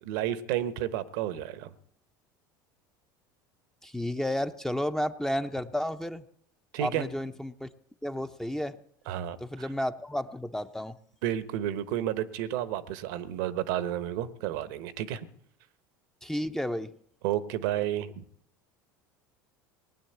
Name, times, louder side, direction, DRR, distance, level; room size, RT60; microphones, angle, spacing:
voice 1, 0.0-1.7 6.7-7.0 9.1-9.7 11.2-15.2 17.2-18.2, right 12 dB, 70° right, 14 dB, 1.1 m, -31 dB
voice 2, 3.8-6.2 6.8-7.7 8.0-8.8 9.4-11.0 16.2-16.9, left 1 dB, 5° left, 9 dB, 0.7 m, -32 dB
19.0 x 9.2 x 7.9 m, 0.71 s
hypercardioid pair, 80°, 11 cm